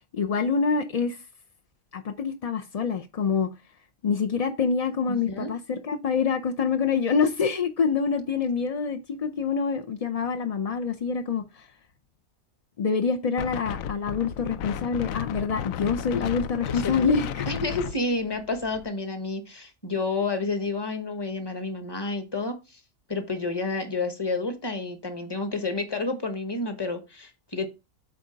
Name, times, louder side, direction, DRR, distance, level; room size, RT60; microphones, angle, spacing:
voice 1, 0.1-1.2 1.9-3.5 4.0-11.7 12.8-17.5, left 5 dB, 60° left, 0.3 m, -26 dB
Wind, 13.4-18.9, left 9 dB, 80° left, 1.0 m, -34 dB
voice 2, 17.5-22.8 23.1-27.7, left 3 dB, 20° left, 1.0 m, -30 dB
8.5 x 3.7 x 5.1 m
omnidirectional pair, 1.4 m